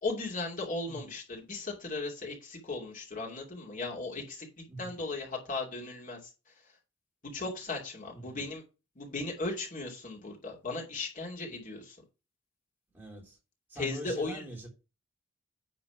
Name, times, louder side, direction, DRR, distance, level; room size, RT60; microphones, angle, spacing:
voice 1, 0.0-4.5 4.8-6.3 7.2-8.6 9.0-12.0 13.8-14.4, left 3 dB, 45° left, 2.6 m, -37 dB
voice 2, 8.1-8.4 12.9-13.4 13.7-14.7, right 1 dB, 10° right, 3.2 m, -43 dB
9.9 x 4.0 x 5.9 m
head